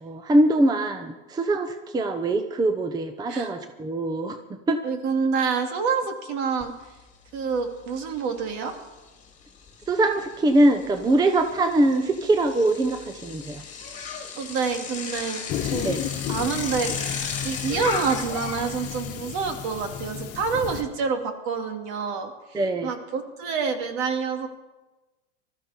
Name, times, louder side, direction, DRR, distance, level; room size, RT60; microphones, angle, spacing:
voice 1, 0.0-4.4 4.7-4.8 9.9-13.6 15.8-16.0 22.5-22.9, right 1 dB, 10° right, 8 dB, 0.7 m, -22 dB
voice 2, 4.8-6.7 7.3-8.7 14.4-15.9 16.3-17.2 17.4-24.5, right 5 dB, 55° right, 5 dB, 2.6 m, -27 dB
Bicycle, 6.6-6.7 7.1-20.9, left 6 dB, 20° left, 2.7 m, -36 dB
sound 1, 15.5-20.8, left 10 dB, 40° left, 1.4 m, -33 dB
19.5 x 13.5 x 4.4 m, 1.1 s
supercardioid pair, 135°, 37 cm